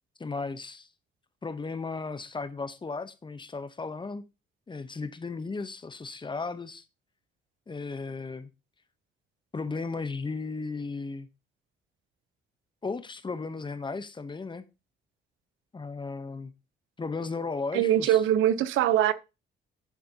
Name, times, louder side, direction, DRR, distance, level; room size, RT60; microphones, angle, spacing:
voice 1, 0.2-0.9 1.4-4.2 4.7-6.8 7.7-8.5 9.5-11.3 12.8-14.6 15.7-16.5 17.0-18.2, left 4 dB, 25° left, 0.9 m, -35 dB
voice 2, 17.7-19.1, right 11 dB, 85° right, 0.7 m, -22 dB
9.9 x 6.9 x 2.8 m
cardioid pair, 90°, 20 cm